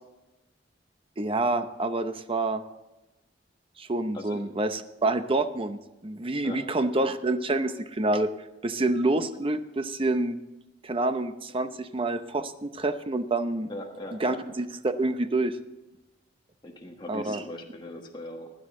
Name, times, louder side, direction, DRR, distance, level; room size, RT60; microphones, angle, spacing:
voice 1, 1.2-2.6 3.8-8.3 8.6-10.4 10.8-13.7 14.1-15.6 17.1-17.4, right 2 dB, 30° right, 10 dB, 0.7 m, -27 dB
voice 2, 13.7-14.4 16.6-18.5, left 1 dB, 25° left, 1 dB, 1.4 m, -40 dB
16.0 x 11.0 x 3.8 m, 1.0 s
head